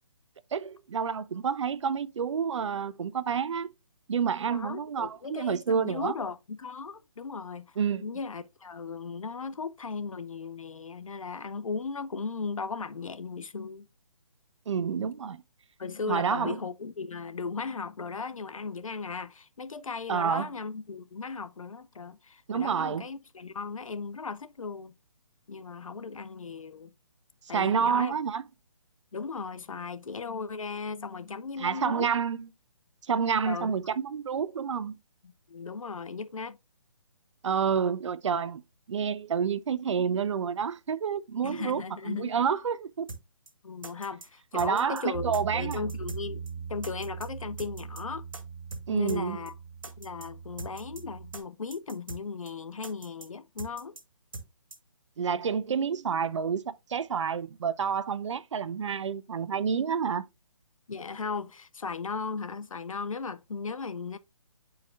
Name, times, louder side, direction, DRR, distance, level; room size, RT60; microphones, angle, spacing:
voice 1, 0.5-3.7 4.1-6.1 7.8-8.0 14.7-15.4 16.1-16.6 20.1-20.5 22.5-23.1 27.5-28.4 31.6-32.5 33.1-34.9 37.4-38.6 38.9-43.1 44.5-45.8 48.9-49.4 55.2-60.2, right 7 dB, 65° right, 0.5 m, -29 dB
voice 2, 4.5-13.9 15.8-24.9 25.5-26.9 27.5-28.1 29.1-32.1 33.5-33.7 35.2-36.6 41.4-42.3 43.6-46.4 46.7-48.3 48.9-49.5 50.0-54.0 60.9-64.2, left 4 dB, 85° left, 0.6 m, -37 dB
sound 1, 43.1-43.2 43.5-43.6 43.8-44.3 44.6-45.0 45.3-45.4 45.7-46.2 46.5-46.6 46.8-47.3 47.6-48.0 48.3-48.4 48.7-48.8 49.1-49.2 49.5-49.6 49.8-50.3 50.6-51.0 51.3-51.4 51.7-52.2 52.5-52.6 52.8-53.3 53.6-54.0 54.3-54.5 54.7-54.8, right 3 dB, 80° right, 1.7 m, -42 dB
Bass guitar, 45.1-51.4, right 6 dB, 25° right, 0.7 m, -40 dB
9.5 x 4.7 x 2.2 m
figure-of-eight pair, 150°, 17 cm